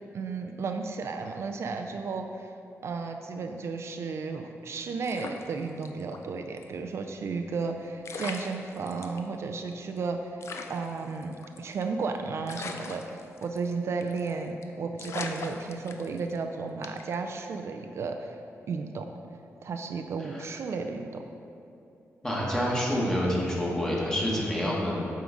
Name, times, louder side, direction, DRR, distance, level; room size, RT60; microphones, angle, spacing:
voice 1, 0.1-2.5 2.8-10.4 10.7-19.1 19.6-21.2, right 4 dB, 60° right, 5 dB, 0.4 m, -33 dB
sound 1, 5.0-6.2 6.6-6.7 7.7-7.8 8.0-9.2 9.7-9.8 10.0-10.1 10.4-12.0 12.5-13.7 14.0-14.3 14.6-14.7 15.0-16.4 16.8-17.1, left 4 dB, 60° left, 0.5 m, -39 dB
voice 2, 22.2-25.1, equal, 10° left, -4 dB, 1.4 m, -27 dB
7.7 x 3.8 x 5.2 m, 2.7 s
wide cardioid pair, 125°, 5 cm